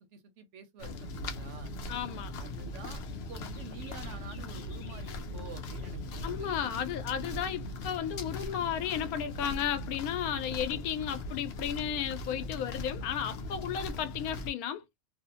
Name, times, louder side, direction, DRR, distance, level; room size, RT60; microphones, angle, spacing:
voice 1, 0.0-1.7 2.4-6.7, right 6 dB, 65° right, 0.8 m, -49 dB
sound 1, 0.8-14.5, left 2 dB, 60° left, 0.7 m, -39 dB
voice 2, 1.9-2.3 6.2-15.0, left 9 dB, 85° left, 1.1 m, -34 dB
2.6 x 2.1 x 2.8 m
omnidirectional pair, 1.5 m